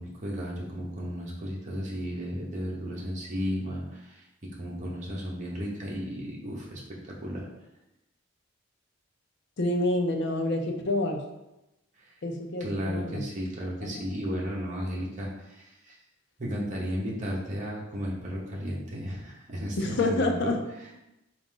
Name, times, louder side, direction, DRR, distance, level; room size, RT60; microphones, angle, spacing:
voice 1, 0.0-7.5 12.0-12.1 12.6-16.0 16.4-20.9, equal, 40° right, -3 dB, 0.9 m, -34 dB
voice 2, 9.6-11.2 12.2-13.2 13.8-13.9 19.8-20.6, left 2 dB, 55° left, 3 dB, 0.5 m, -28 dB
3.8 x 2.5 x 3.8 m, 0.92 s
head